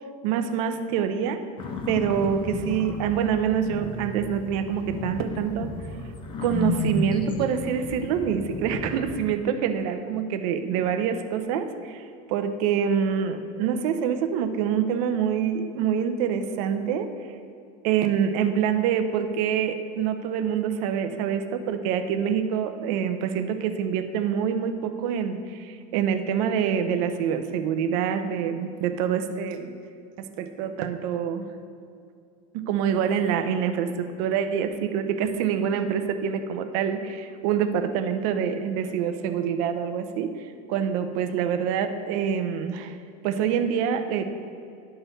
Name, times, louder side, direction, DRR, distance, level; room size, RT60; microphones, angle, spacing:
voice 1, 0.2-1.4 1.9-5.7 6.4-17.1 17.8-29.7 30.2-31.5 32.5-43.0 43.2-44.2, right 8 dB, 65° right, 7 dB, 0.6 m, -26 dB
sound 1, 1.6-9.2, left 3 dB, 25° left, 0.6 m, -33 dB
sound 2, 3.6-9.4, left 2 dB, 50° left, 1.6 m, -47 dB
11.0 x 3.9 x 4.0 m, 2.4 s
supercardioid pair, 155°, 20 cm